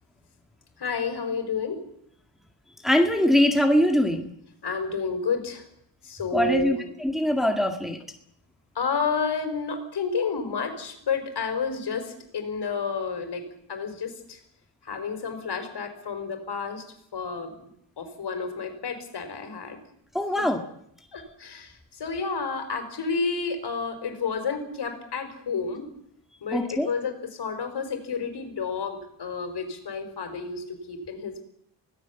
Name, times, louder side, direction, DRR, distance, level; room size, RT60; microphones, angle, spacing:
voice 1, 0.8-1.8 4.6-5.6 6.0-6.8 8.7-14.4 14.8-16.8 17.1-17.7 18.0-19.8 20.4-20.5 21.1-25.9 26.4-31.4, left 5 dB, 60° left, 7 dB, 4.7 m, -30 dB
voice 2, 2.8-4.3 6.3-8.0 20.1-20.6 26.5-26.9, equal, ahead, 4 dB, 1.9 m, -22 dB
24.0 x 17.5 x 7.1 m, 0.73 s
cardioid pair, 110°, 45 cm